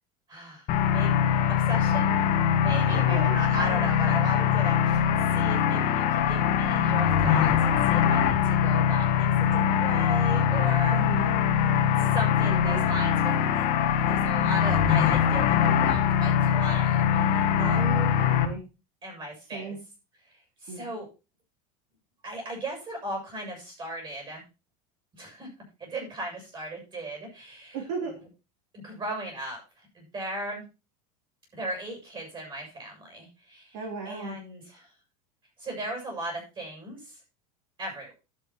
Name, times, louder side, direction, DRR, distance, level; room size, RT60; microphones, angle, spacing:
voice 1, 0.3-1.1 1.7-2.2 2.6-5.0 5.3-11.0 12.0-13.7 14.1-17.8 19.0-19.8 20.6-21.1 22.2-24.4 25.1-25.5 25.8-27.8 28.7-30.6 31.5-33.8 34.1-34.9 35.6-37.2 37.8-38.1, right 1 dB, 25° right, 2 dB, 7.5 m, -37 dB
sound 1, 0.7-18.5, left 8 dB, 45° left, 1.8 m, -23 dB
voice 2, 2.9-3.4 10.9-11.3 12.4-12.8 17.5-18.6 19.5-19.8 20.7-20.9 27.7-28.1 33.7-34.4, right 4 dB, 65° right, 2 dB, 3.3 m, -35 dB
11.0 x 8.5 x 4.4 m, 0.30 s
supercardioid pair, 150°, 19 cm